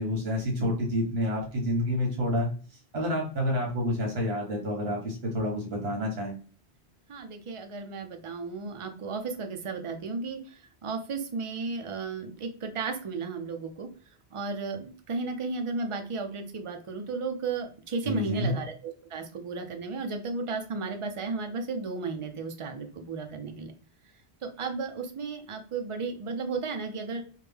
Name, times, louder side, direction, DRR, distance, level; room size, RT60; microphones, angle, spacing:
voice 1, 0.0-2.5 2.9-6.3 18.0-18.6, left 1 dB, 70° right, -1 dB, 1.4 m, -28 dB
voice 2, 7.1-13.9 14.3-23.7 24.4-27.2, right 4 dB, 40° right, 5 dB, 0.4 m, -34 dB
3.2 x 2.1 x 3.4 m, 0.39 s
omnidirectional pair, 1.1 m